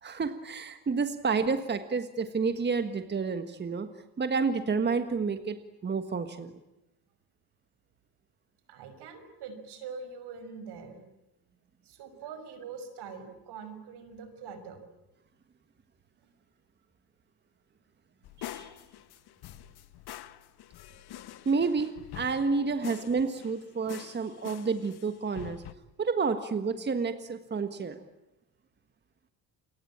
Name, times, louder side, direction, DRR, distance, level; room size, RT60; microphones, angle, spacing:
voice 1, 0.0-3.9 4.2-5.6 5.8-6.5 18.4-18.7 21.4-25.6 26.0-28.0, right 4 dB, 25° right, 9 dB, 1.6 m, -30 dB
voice 2, 8.7-11.0 11.8-14.8, right 5 dB, 70° right, 9 dB, 6.0 m, -43 dB
sound 1, 18.2-23.6 23.9-25.7, left 12 dB, 65° left, 1.5 m, -46 dB
29.0 x 23.0 x 8.8 m, 0.96 s
cardioid pair, 120°, 41 cm